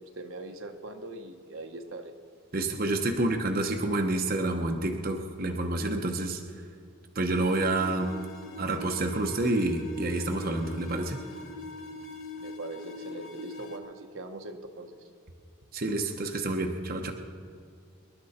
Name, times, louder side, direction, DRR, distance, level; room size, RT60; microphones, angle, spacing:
voice 1, 0.2-2.1 3.1-3.2 12.4-15.0, right 2 dB, 70° right, 4 dB, 1.1 m, -41 dB
voice 2, 2.5-6.4 7.1-8.1 8.6-11.2 15.7-17.1, right 2 dB, 45° right, 3 dB, 1.0 m, -28 dB
sound 1, 7.3-13.8, left 1 dB, 60° left, 2.1 m, -42 dB
26.5 x 11.5 x 4.3 m, 2.3 s
head